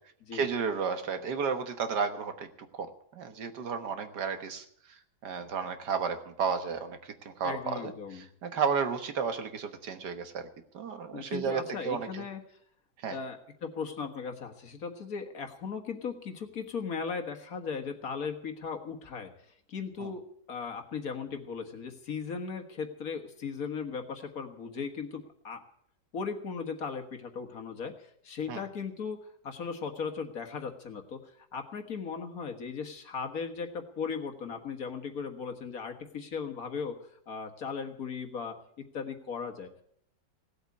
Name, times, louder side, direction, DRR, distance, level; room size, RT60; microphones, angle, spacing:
voice 1, 0.3-4.6 5.2-10.5 10.7-12.2 13.0-13.2 20.0-20.1 28.5-28.6, right 6 dB, 60° right, 8 dB, 1.8 m, -33 dB
voice 2, 7.4-8.3 11.1-12.4 13.1-19.3 19.7-25.6 26.1-39.8, left 5 dB, 50° left, 4 dB, 1.9 m, -37 dB
17.5 x 8.1 x 8.4 m, 0.67 s
omnidirectional pair, 2.1 m